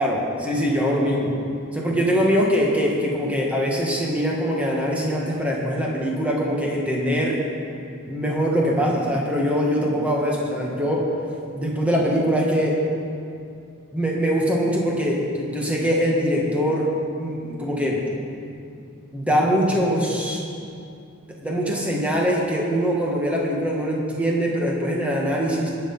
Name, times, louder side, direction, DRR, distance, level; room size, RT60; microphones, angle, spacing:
voice 1, 0.0-1.3 1.7-7.4 8.1-11.1 11.5-12.8 13.9-16.9 17.2-18.0 19.1-20.4 21.4-25.7, equal, 5° right, -3 dB, 1.9 m, -22 dB
20.5 x 7.0 x 5.6 m, 2.5 s
head